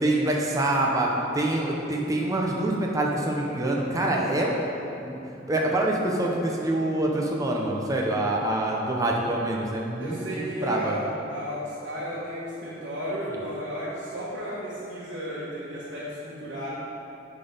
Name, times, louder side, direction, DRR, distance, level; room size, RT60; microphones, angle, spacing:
voice 1, 0.0-4.6 5.0-5.2 5.5-10.9, right 1 dB, 20° right, -2 dB, 0.7 m, -26 dB
voice 2, 10.0-16.7, equal, 60° right, -10 dB, 1.6 m, -33 dB
9.9 x 3.9 x 5.2 m, 2.8 s
head